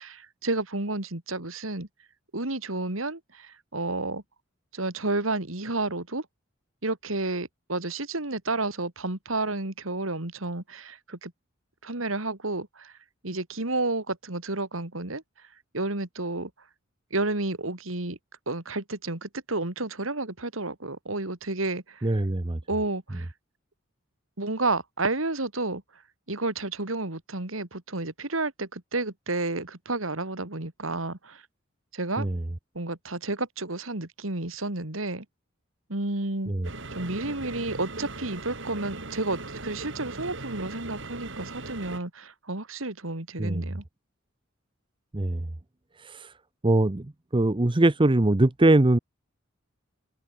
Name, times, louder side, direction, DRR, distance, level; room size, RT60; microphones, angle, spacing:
voice 1, 0.0-1.9 2.3-4.2 4.7-6.2 6.8-11.3 11.8-12.9 13.2-15.2 15.7-16.5 17.1-18.2 18.5-22.1 22.7-23.3 24.4-25.8 26.3-31.4 31.9-32.3 32.7-35.2 35.9-36.5 36.9-43.8, right 2 dB, 85° right, 3.0 m, -31 dB
voice 2, 22.0-22.6 32.2-32.4 36.5-36.7 43.4-43.7 45.1-45.5 46.0-46.3 46.6-47.1 47.3-49.0, right 2 dB, 25° right, 0.8 m, -22 dB
sound 1, 36.6-42.0, right 2 dB, 65° right, 7.1 m, -39 dB
open air
head